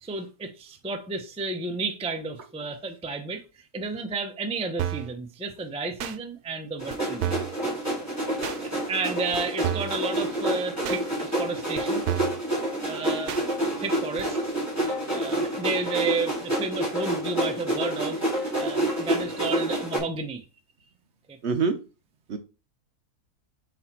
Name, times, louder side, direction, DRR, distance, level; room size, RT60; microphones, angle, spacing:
voice 1, 0.0-3.4 3.7-7.4 8.6-12.0 12.8-13.5 13.8-14.5 15.1-18.2 18.6-20.4 21.3-21.4, right 3 dB, 10° right, 0.4 m, -32 dB
sound 1, 4.8-5.1 6.0-6.2 6.9-7.0 7.2-7.6 8.4-8.6 9.3-9.4 9.6-10.0 10.9-11.0 11.8-11.9 12.1-12.4 13.3-13.4 14.2-14.3, right 11 dB, 85° right, 1.2 m, -30 dB
sound 2, 6.8-20.0, right 1 dB, 10° left, 2.5 m, -28 dB
voice 2, 18.6-19.0 21.4-21.8 22.3-22.4, right 5 dB, 55° right, 0.8 m, -28 dB
5.5 x 4.2 x 4.4 m
omnidirectional pair, 1.6 m